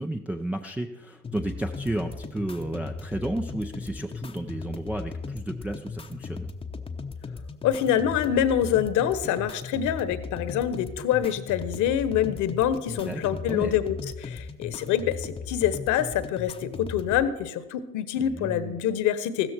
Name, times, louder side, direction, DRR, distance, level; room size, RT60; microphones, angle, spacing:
voice 1, 0.0-6.5 13.0-13.8 18.2-18.8, right 1 dB, 5° right, 3 dB, 0.4 m, -32 dB
sound 1, 1.2-17.2, left 4 dB, 15° left, 0.8 m, -37 dB
voice 2, 7.6-19.5, left 10 dB, 40° left, 13 dB, 1.3 m, -26 dB
15.0 x 13.0 x 4.4 m, 0.99 s
hypercardioid pair, 95°, 45 cm